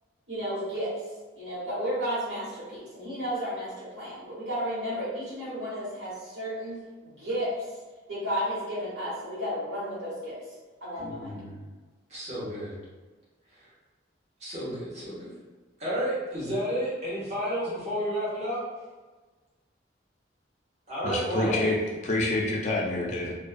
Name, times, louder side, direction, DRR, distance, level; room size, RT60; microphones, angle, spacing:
voice 1, 0.3-0.9 1.3-7.8 8.1-10.4 10.8-11.4, equal, 70° right, -10 dB, 1.3 m, -33 dB
voice 2, 11.0-11.5 12.1-12.8 13.6-13.7 14.4-15.3 15.8-18.6 20.9-21.7, equal, 35° right, -9 dB, 0.9 m, -31 dB
voice 3, 21.0-21.8 22.0-23.3, left 2 dB, 40° left, -2 dB, 0.4 m, -27 dB
2.5 x 2.2 x 2.4 m, 1.3 s
head